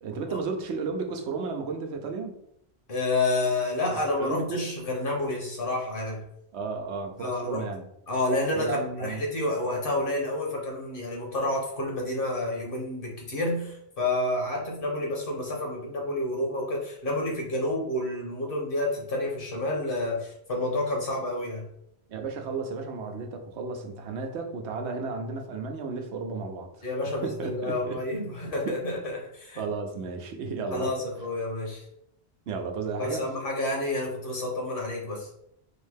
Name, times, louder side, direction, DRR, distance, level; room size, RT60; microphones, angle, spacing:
voice 1, 0.0-2.3 3.9-4.7 6.5-7.8 8.5-9.2 22.1-26.7 27.0-28.0 28.6-28.7 29.6-30.9 32.5-33.3, right 4 dB, 90° right, 4 dB, 0.9 m, -33 dB
voice 2, 2.9-6.2 7.2-7.6 8.1-21.7 26.8-29.6 30.7-31.8 33.0-35.3, left 2 dB, 55° left, -1 dB, 1.2 m, -29 dB
4.2 x 2.7 x 3.5 m, 0.74 s
omnidirectional pair, 1.1 m